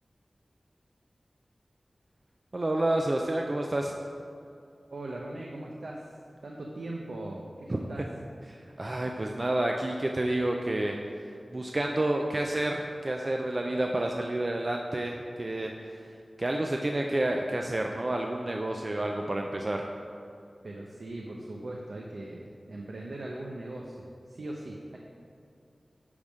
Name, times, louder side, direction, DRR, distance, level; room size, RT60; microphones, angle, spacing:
voice 1, 2.5-3.9 7.7-7.8 8.5-11.0 11.5-16.1 16.4-19.9, right 1 dB, 45° right, 2 dB, 0.5 m, -29 dB
voice 2, 4.9-6.1 6.4-8.0 20.6-25.0, right 1 dB, 80° right, -2 dB, 0.7 m, -40 dB
9.6 x 3.6 x 6.3 m, 2.4 s
wide cardioid pair, 55°, 0 cm